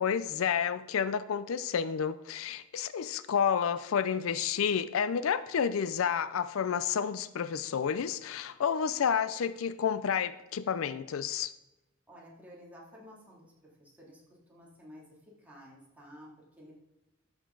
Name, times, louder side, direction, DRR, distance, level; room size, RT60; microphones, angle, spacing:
voice 1, 0.0-11.5, left 7 dB, 80° left, 14 dB, 0.4 m, -30 dB
voice 2, 12.1-14.2 14.5-16.7, equal, 10° right, -5 dB, 2.6 m, -53 dB
13.0 x 6.6 x 3.9 m, 0.99 s
head